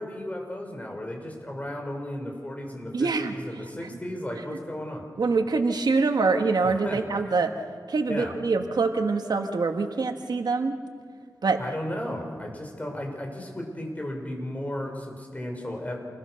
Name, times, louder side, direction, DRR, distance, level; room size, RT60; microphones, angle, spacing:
voice 1, 0.0-5.0 6.6-7.0 8.1-8.3 11.6-16.0, left 1 dB, 20° left, 1 dB, 5.7 m, -35 dB
voice 2, 2.9-3.3 4.5-4.6 5.2-7.5 7.9-10.7 11.4-11.6, right 4 dB, 75° right, 6 dB, 1.5 m, -24 dB
28.0 x 21.5 x 6.5 m, 2.1 s
wide cardioid pair, 70°, 7 cm